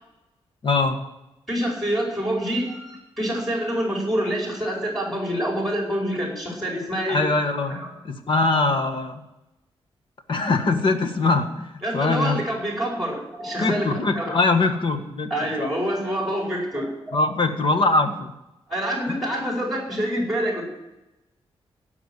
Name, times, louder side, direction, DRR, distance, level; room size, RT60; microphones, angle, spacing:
voice 1, 0.6-1.0 7.1-9.2 10.3-12.4 13.6-15.7 17.1-18.3 19.1-19.2, left 3 dB, 55° left, 6 dB, 1.7 m, -22 dB
voice 2, 1.5-7.2 7.7-7.9 11.8-14.5 15.3-17.2 18.7-20.6, equal, ahead, -2 dB, 4.8 m, -26 dB
16.5 x 6.0 x 9.8 m, 0.95 s
wide cardioid pair, 115°, 10 cm